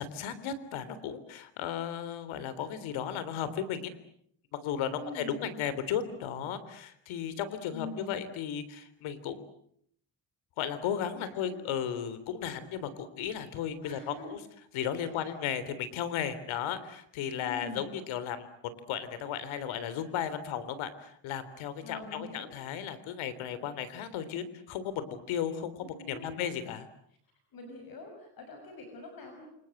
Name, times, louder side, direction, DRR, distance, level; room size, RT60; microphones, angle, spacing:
voice 1, 0.0-3.9 4.5-9.5 10.6-14.4 14.7-18.5 18.9-26.9, left 8 dB, 85° left, 14 dB, 3.6 m, -35 dB
voice 2, 4.9-5.8 7.7-8.2 11.1-11.6 13.8-14.4 15.0-15.4 17.3-17.9 21.8-22.5 25.8-26.3 27.5-29.5, left 2 dB, 50° left, 4 dB, 6.1 m, -44 dB
28.5 x 27.0 x 7.9 m, 0.68 s
cardioid pair, 155°, 46 cm